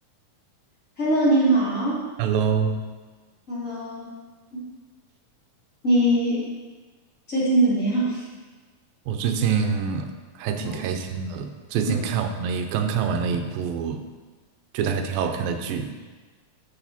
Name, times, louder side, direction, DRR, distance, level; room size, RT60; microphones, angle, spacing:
voice 1, 1.0-2.0 3.5-4.1 4.5-4.6 5.8-6.4 7.3-8.2 10.6-10.7 11.8-12.0, right 1 dB, 25° left, -9 dB, 3.3 m, -21 dB
voice 2, 2.2-2.8 9.1-10.1 10.4-14.0 14.7-15.9, right 6 dB, 90° right, 6 dB, 2.5 m, -25 dB
13.0 x 6.7 x 4.3 m, 1.3 s
omnidirectional pair, 4.0 m